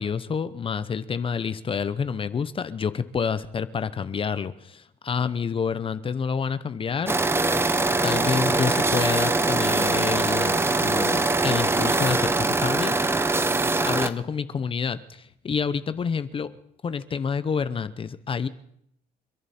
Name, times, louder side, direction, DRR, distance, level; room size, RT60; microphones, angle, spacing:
voice 1, 0.0-7.2 7.5-13.0 13.8-16.5 16.8-18.5, left 6 dB, 30° left, 14 dB, 0.8 m, -28 dB
sound 1, 7.1-14.1, right 2 dB, 15° right, 0.8 m, -23 dB
30.0 x 11.0 x 4.3 m, 0.72 s
cardioid pair, 110°, 17 cm